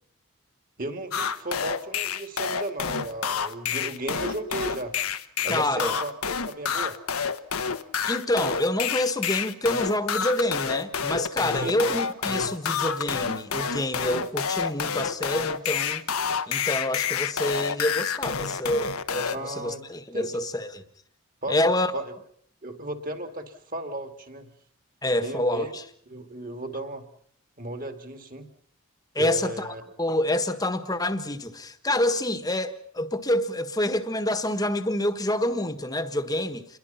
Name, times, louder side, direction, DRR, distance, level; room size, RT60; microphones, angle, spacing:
voice 1, 0.8-4.9 5.4-7.0 11.6-11.8 19.3-19.8 20.1-20.4 21.4-21.6 21.9-22.0 22.6-24.5 25.2-25.7 26.1-27.0 27.6-28.4 29.2-29.8, right 1 dB, 40° right, 2.5 m, -35 dB
sound 1, 1.1-19.4, left 6 dB, 85° left, 1.3 m, -28 dB
voice 2, 5.5-6.0 8.1-16.0 16.5-20.8 21.5-21.9 25.0-25.9 29.1-36.8, left 1 dB, 15° left, 1.4 m, -27 dB
28.0 x 22.0 x 5.7 m
head